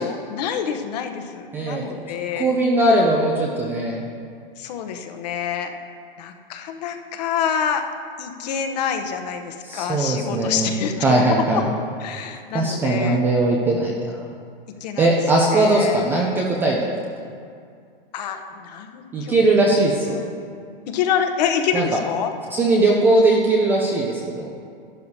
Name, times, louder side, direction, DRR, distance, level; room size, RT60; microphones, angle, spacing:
voice 1, 0.0-2.5 4.6-5.7 6.2-7.8 8.2-11.6 12.0-13.2 14.8-16.1 16.9-17.0 18.1-19.4 19.7-20.3 20.9-22.3, left 8 dB, 45° left, 6 dB, 0.9 m, -27 dB
voice 2, 1.5-1.9 2.4-4.0 9.6-10.7 11.0-11.7 12.5-14.2 15.0-16.9 19.1-20.2 21.7-21.9 22.5-24.5, right 2 dB, 5° right, -2 dB, 0.3 m, -19 dB
12.5 x 11.5 x 2.7 m, 2.3 s
hypercardioid pair, 150°, 29 cm